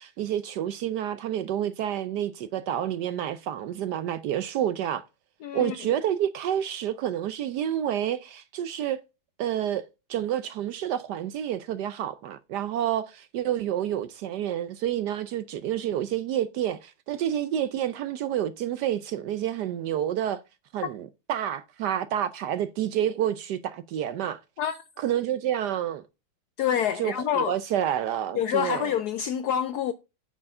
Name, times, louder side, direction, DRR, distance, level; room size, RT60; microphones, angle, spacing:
voice 1, 0.0-5.0 5.5-9.0 9.4-9.8 10.1-20.4 20.7-24.4 25.0-26.0 27.0-28.9, right 10 dB, 70° right, 1.0 m, -29 dB
voice 2, 5.4-5.8 24.6-24.8 26.6-27.6 28.4-29.9, left 9 dB, 75° left, 0.9 m, -27 dB
8.6 x 4.7 x 5.3 m
omnidirectional pair, 2.2 m